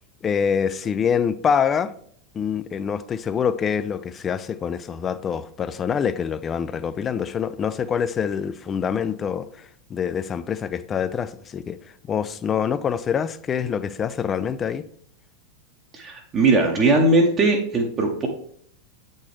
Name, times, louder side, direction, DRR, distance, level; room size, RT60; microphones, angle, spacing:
voice 1, 0.2-1.9 2.3-11.8 12.1-14.9, left 7 dB, 25° left, 0.3 m, -25 dB
voice 2, 15.9-18.3, right 2 dB, 25° right, 0.9 m, -19 dB
8.2 x 4.3 x 3.2 m
figure-of-eight pair, 90°, 0 cm